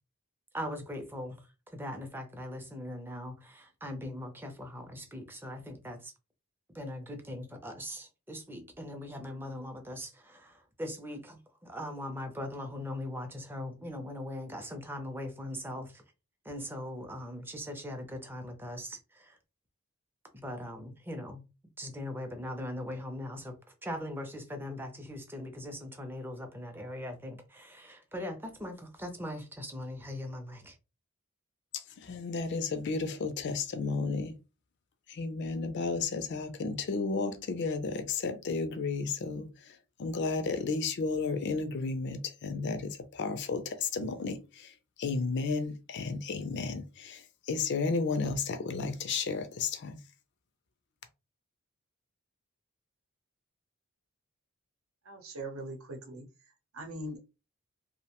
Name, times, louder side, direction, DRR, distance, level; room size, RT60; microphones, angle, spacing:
voice 1, 0.5-6.1 6.7-16.0 16.4-19.4 20.3-21.4 21.8-30.8, left 1 dB, 10° right, 0.4 m, -40 dB
voice 2, 31.7-34.3 35.1-50.0, left 4 dB, 55° left, 0.4 m, -33 dB
voice 3, 55.0-57.2, right 1 dB, 75° right, 0.8 m, -42 dB
2.5 x 2.1 x 2.8 m
head